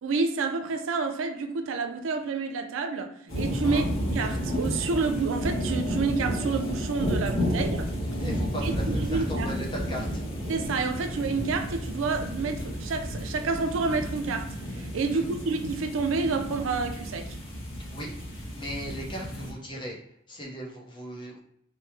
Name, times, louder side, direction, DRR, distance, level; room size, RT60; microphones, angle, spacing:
voice 1, 0.0-3.8 4.1-7.9 8.6-9.5 10.5-17.4, right 4 dB, 75° right, 0.4 m, -29 dB
sound 1, 3.3-19.5, equal, 80° left, 1.2 m, -31 dB
voice 2, 8.1-10.2 15.0-15.2 17.7-20.0 20.3-21.4, equal, 25° left, 0.6 m, -38 dB
3.1 x 2.1 x 3.1 m
head